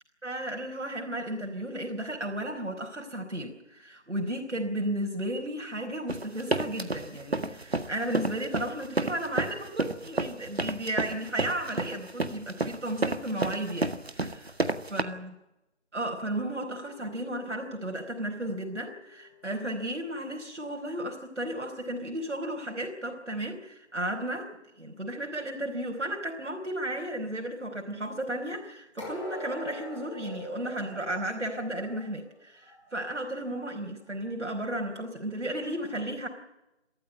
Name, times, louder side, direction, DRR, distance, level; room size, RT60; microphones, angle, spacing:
voice 1, 0.2-14.5 14.9-15.3 15.9-24.5 24.8-36.3, right 1 dB, 85° right, 1 dB, 4.6 m, -34 dB
sound 1, 6.1-15.0, right 2 dB, 60° right, 1.8 m, -30 dB
sound 2, 16.5-19.6 29.0-32.9 33.3-33.5 34.1-34.2, left 1 dB, 25° left, 5.6 m, -45 dB
27.0 x 14.0 x 9.5 m, 0.91 s
figure-of-eight pair, 180°, 35 cm